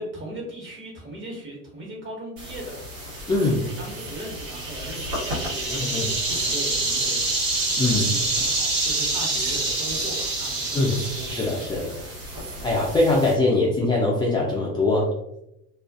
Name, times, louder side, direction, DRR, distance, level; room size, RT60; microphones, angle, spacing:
voice 1, 0.0-2.8 3.5-7.3 7.7-11.4, right 1 dB, 30° right, -2 dB, 1.1 m, -38 dB
sound 1, 2.4-13.3, right 2 dB, 90° right, 1.4 m, -27 dB
voice 2, 3.3-3.7 5.7-6.1 7.8-8.1 10.7-11.0 11.3-12.0 12.6-15.1, left 2 dB, 10° left, -4 dB, 0.4 m, -22 dB
2.4 x 2.4 x 2.3 m, 0.85 s
supercardioid pair, 90°, 37 cm